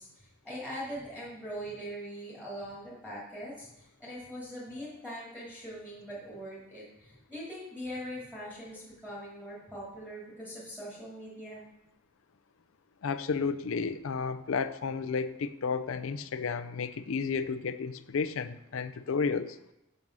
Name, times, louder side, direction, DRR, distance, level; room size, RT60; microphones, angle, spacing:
voice 1, 0.0-11.7, equal, 5° right, -8 dB, 2.8 m, -42 dB
voice 2, 13.0-19.6, left 5 dB, 75° left, 11 dB, 0.5 m, -32 dB
6.3 x 5.4 x 6.1 m, 0.88 s
head